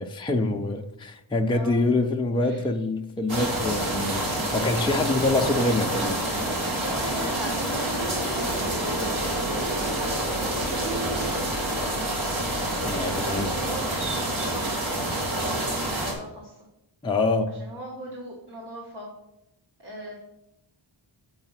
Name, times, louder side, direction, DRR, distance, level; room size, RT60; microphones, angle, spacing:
voice 1, 0.0-6.3 12.8-13.5 17.0-17.6, left 2 dB, 10° left, 0.4 m, -25 dB
voice 2, 1.5-1.9 2.4-2.7 6.7-10.3 10.7-12.1 12.9-16.6 17.6-19.1 19.8-20.2, right 1 dB, 55° right, 1.8 m, -40 dB
sound 1, 3.3-16.1, right 1 dB, 75° right, 2.2 m, -28 dB
sound 2, 7.0-11.3, right 2 dB, 90° right, 2.0 m, -35 dB
7.8 x 4.8 x 5.8 m
wide cardioid pair, 170°, 48 cm